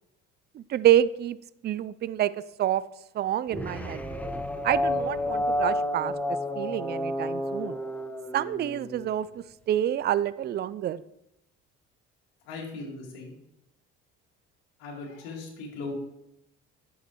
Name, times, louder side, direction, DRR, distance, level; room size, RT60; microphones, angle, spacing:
voice 1, 0.5-1.4 1.6-2.3 2.6-2.8 3.1-4.0 4.6-6.1 6.6-7.8 8.3-11.0, right 11 dB, 35° right, 17 dB, 0.4 m, -27 dB
sound 1, 3.5-9.0, left 1 dB, 5° left, 0.9 m, -30 dB
voice 2, 12.5-13.4 14.8-15.9, left 3 dB, 85° left, -2 dB, 2.1 m, -38 dB
10.5 x 6.3 x 3.1 m, 0.82 s
supercardioid pair, 75°, 30 cm